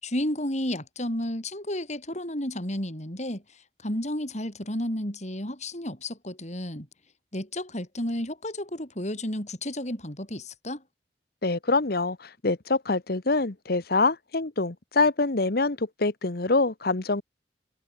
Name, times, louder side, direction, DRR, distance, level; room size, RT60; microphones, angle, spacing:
voice 1, 0.0-3.4 3.8-6.9 7.3-10.8, left 1 dB, 40° left, 7.3 m, -32 dB
voice 2, 11.4-17.2, left 3 dB, 55° left, 1.2 m, -25 dB
head